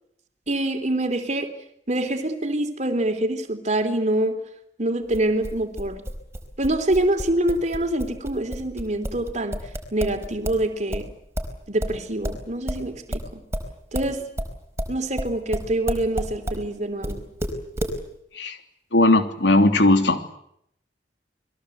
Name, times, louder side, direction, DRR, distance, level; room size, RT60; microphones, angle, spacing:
voice 1, 0.5-1.5 1.9-4.4 4.8-6.0 6.6-9.6 9.9-11.1 11.7-13.4 13.9-14.3 14.9-17.2, right 1 dB, 40° right, 6 dB, 3.4 m, -25 dB
sound 1, 5.1-10.6 10.9-16.6 17.0-18.0, equal, 15° right, 4.6 m, -30 dB
voice 2, 18.9-20.3, left 2 dB, 80° left, 7 dB, 3.2 m, -18 dB
29.5 x 22.0 x 8.1 m, 0.73 s
head